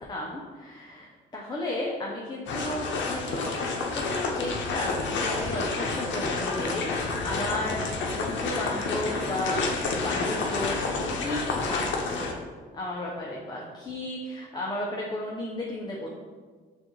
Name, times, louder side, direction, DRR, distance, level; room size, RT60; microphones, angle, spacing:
voice 1, 0.1-3.6 3.9-10.8 11.1-12.3 12.7-16.1, left 1 dB, 20° left, -3 dB, 0.7 m, -34 dB
sound 1, 2.5-12.3, left 3 dB, 70° left, 0.7 m, -29 dB
6.1 x 2.5 x 3.1 m, 1.4 s
cardioid pair, 90°, 20 cm